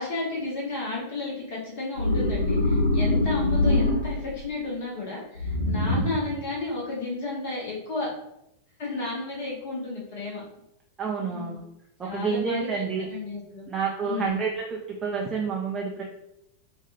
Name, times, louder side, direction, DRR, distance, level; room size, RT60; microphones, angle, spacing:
voice 1, 0.0-8.1 8.8-10.4 11.2-11.6 12.0-12.7 13.0-13.7 14.0-14.4, left 3 dB, 50° left, -4 dB, 0.9 m, -32 dB
sound 1, 2.0-4.4 5.4-6.4, left 2 dB, 90° right, 0.4 m, -24 dB
voice 2, 11.0-11.6 12.0-13.1 13.7-16.0, right 5 dB, 20° right, -1 dB, 0.4 m, -29 dB
2.5 x 2.2 x 3.0 m, 0.83 s
figure-of-eight pair, 90°, 0 cm